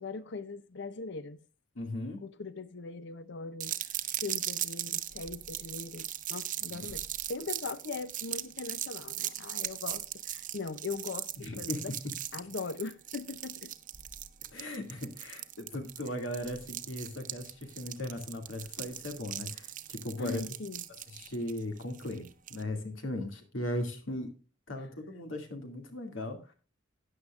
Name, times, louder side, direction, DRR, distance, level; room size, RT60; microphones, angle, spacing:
voice 1, 0.0-1.4 2.2-3.7 4.2-11.9 12.3-13.7 20.2-20.8, left 4 dB, 65° left, 0.6 m, -40 dB
voice 2, 1.7-2.2 6.7-6.9 11.4-12.1 14.5-20.4 21.1-24.3 24.7-26.5, left 1 dB, 85° left, 2.4 m, -38 dB
sound 1, 3.6-22.6, right 12 dB, 45° right, 0.7 m, -39 dB
13.0 x 9.8 x 2.4 m
head